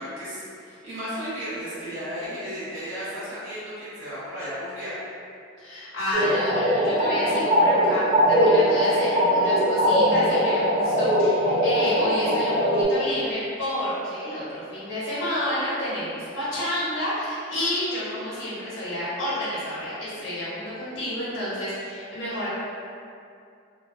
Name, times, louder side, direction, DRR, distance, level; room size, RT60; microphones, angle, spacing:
voice 1, 0.0-4.9, equal, 70° right, -13 dB, 1.2 m, -34 dB
voice 2, 5.6-22.5, left 1 dB, 75° left, -10 dB, 0.7 m, -30 dB
sound 1, 6.1-12.9, equal, 20° right, 1.2 m, -21 dB
2.2 x 2.2 x 2.5 m, 2.5 s
head